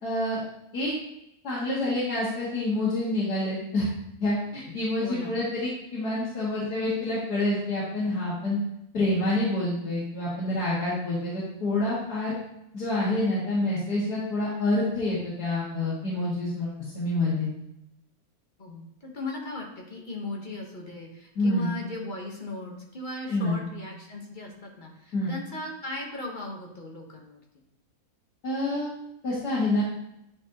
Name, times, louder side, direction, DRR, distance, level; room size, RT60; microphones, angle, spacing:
voice 1, 0.0-0.4 0.7-0.9 1.4-3.9 4.2-8.6 8.9-12.4 12.7-17.5 21.4-21.7 23.3-23.6 25.1-25.3 28.4-28.9 29.2-29.8, left 2 dB, 85° left, -9 dB, 2.3 m, -27 dB
voice 2, 5.0-5.4 18.6-27.4, left 2 dB, 35° left, 0 dB, 1.0 m, -37 dB
9.7 x 4.1 x 2.9 m, 0.83 s
omnidirectional pair, 1.6 m